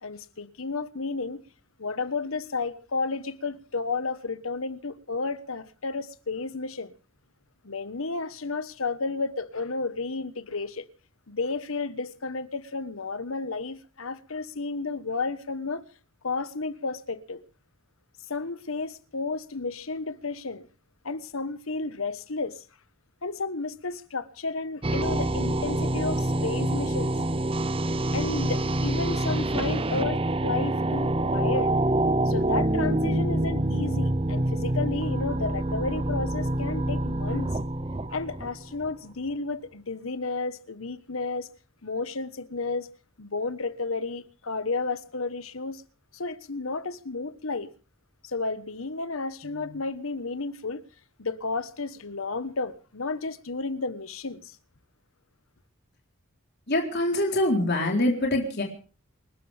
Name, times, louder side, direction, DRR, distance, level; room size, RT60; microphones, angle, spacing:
voice 1, 0.0-1.4 1.8-6.9 7.6-10.9 11.3-15.8 16.2-17.4 18.3-20.7 21.0-22.6 23.2-27.1 28.1-31.7 32.2-37.5 38.1-41.5 41.8-42.9 43.2-45.8 46.1-47.7 48.2-50.8 51.2-54.6, left 3 dB, 75° left, 1.3 m, -32 dB
sound 1, 24.8-38.9, right 1 dB, 25° right, 0.8 m, -26 dB
voice 2, 56.7-58.6, left 1 dB, 50° left, 4.0 m, -24 dB
28.5 x 13.0 x 3.5 m
head